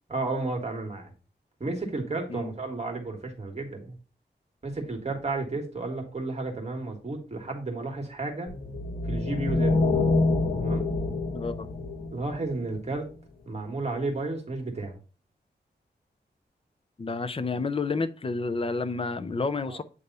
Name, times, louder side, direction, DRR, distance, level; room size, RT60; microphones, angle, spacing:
voice 1, 0.1-1.1 1.6-3.9 4.6-8.5 9.0-9.8 10.6-10.9 12.1-13.1 13.5-15.0 19.6-19.8, right 3 dB, 35° right, 1.7 m, -32 dB
sound 1, 8.5-12.9, left 3 dB, 50° left, 1.2 m, -26 dB
voice 2, 11.3-11.7 17.0-19.8, left 3 dB, 30° left, 0.5 m, -30 dB
8.3 x 3.4 x 3.9 m
wide cardioid pair, 135°, 18 cm